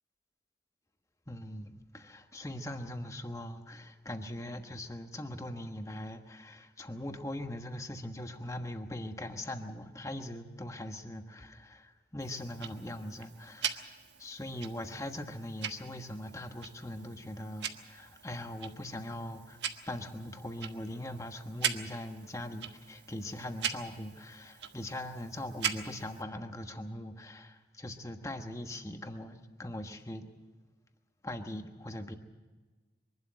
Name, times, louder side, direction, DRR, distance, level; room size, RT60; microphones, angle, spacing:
voice 1, 1.3-13.9 14.2-19.6 19.9-30.3 31.2-32.2, left 1 dB, 15° left, 6 dB, 1.2 m, -41 dB
Tick-tock, 12.2-26.2, right 8 dB, 75° right, 1.3 m, -41 dB
24.0 x 12.0 x 9.9 m, 1.3 s
head